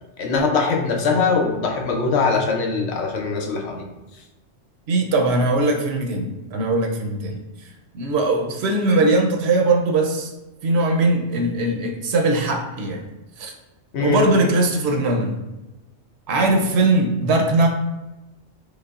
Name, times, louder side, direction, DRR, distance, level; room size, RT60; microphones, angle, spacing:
voice 1, 0.2-3.9 13.9-14.2, left 4 dB, 70° left, 1 dB, 0.9 m, -21 dB
voice 2, 4.9-7.4 7.9-10.3 10.6-13.0 13.4-13.5 14.0-15.4 16.3-17.7, right 2 dB, 70° right, 3 dB, 0.8 m, -20 dB
5.3 x 2.0 x 2.3 m, 1.0 s
omnidirectional pair, 1.2 m